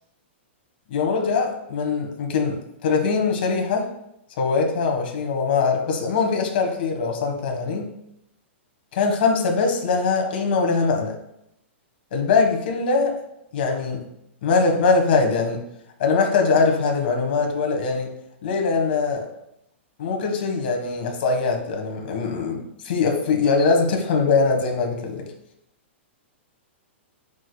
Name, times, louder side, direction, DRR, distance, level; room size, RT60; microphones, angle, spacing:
voice 1, 0.9-3.9 4.4-7.9 8.9-11.2 12.1-13.2 13.5-14.0 14.4-15.6 16.0-18.1 18.4-19.2 20.0-22.6 22.8-25.2, left 4 dB, 50° left, 2 dB, 1.4 m, -22 dB
9.1 x 5.0 x 2.3 m, 0.79 s
hypercardioid pair, 165°, 7 cm